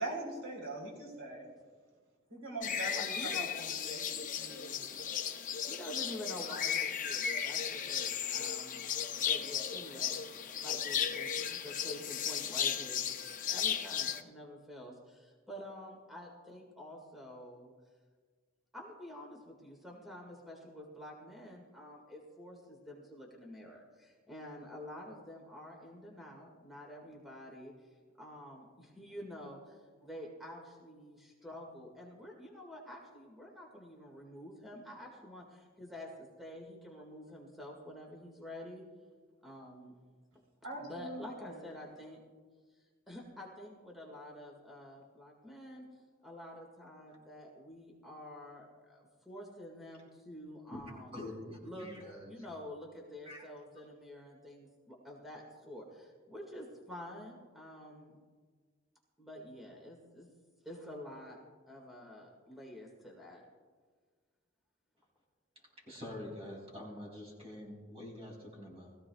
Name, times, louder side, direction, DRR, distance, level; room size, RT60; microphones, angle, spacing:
voice 1, 0.0-1.5 2.3-4.7 40.6-41.6, right 2 dB, 80° right, -1 dB, 3.8 m, -42 dB
sound 1, 2.6-14.2, left 8 dB, 40° left, 0.7 m, -35 dB
voice 2, 2.9-3.8 4.2-4.3 5.7-8.8 9.2-10.4 10.6-13.1 13.5-17.7 18.7-27.7 28.2-36.1 36.4-38.8 39.4-39.9 40.8-42.2 43.1-45.9 46.2-51.3 51.6-51.9 52.3-58.2 59.2-60.3 60.6-61.4 61.7-63.4, left 1 dB, ahead, -1 dB, 1.9 m, -48 dB
voice 3, 51.1-52.4 53.2-53.4 65.8-69.0, left 1 dB, 30° right, -2 dB, 4.1 m, -46 dB
21.0 x 15.0 x 2.3 m, 1.5 s
head